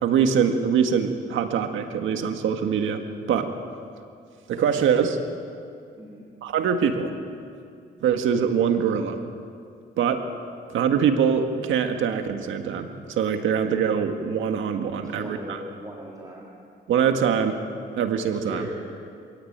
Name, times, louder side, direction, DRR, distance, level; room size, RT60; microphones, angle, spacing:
voice 1, 0.0-3.0 3.3-3.5 4.5-5.2 6.4-7.1 8.0-9.2 10.0-10.2 10.7-15.6 16.9-17.6 18.0-18.7, right 7 dB, 80° right, 6 dB, 1.8 m, -23 dB
voice 2, 15.0-16.5 18.3-18.8, equal, 20° right, -4 dB, 3.9 m, -38 dB
26.5 x 17.0 x 8.9 m, 2.4 s
cardioid pair, 90°, 20 cm